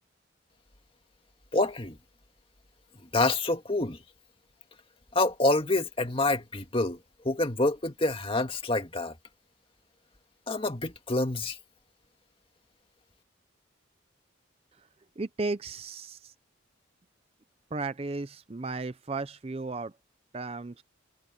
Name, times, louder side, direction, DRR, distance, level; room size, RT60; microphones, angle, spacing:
voice 1, 1.5-2.0 3.1-4.0 5.1-7.0 7.2-9.1 10.5-11.6, left 2 dB, 25° left, 2.0 m, -27 dB
voice 2, 15.2-16.3 17.7-19.9 20.3-20.8, right 3 dB, 30° right, 0.5 m, -34 dB
head